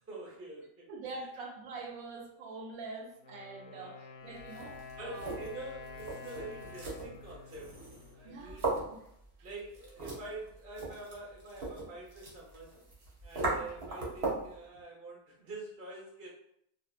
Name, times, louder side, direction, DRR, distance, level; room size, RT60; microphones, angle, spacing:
voice 1, 0.1-0.9 1.1-1.2 2.9-3.0 3.7-4.0 5.0-7.8 8.1-8.7 9.4-12.8 13.2-16.3, right 2 dB, 15° right, -3 dB, 0.5 m, -46 dB
voice 2, 0.9-5.4 8.2-9.0 13.4-13.7, right 3 dB, 75° right, 1 dB, 1.0 m, -45 dB
Wind instrument woodwind instrument, 3.1-8.9, left 4 dB, 65° left, 0.8 m, -49 dB
sound 1, 4.4-14.6, right 2 dB, 50° right, 0.8 m, -39 dB
2.6 x 2.3 x 2.4 m, 0.73 s
omnidirectional pair, 1.5 m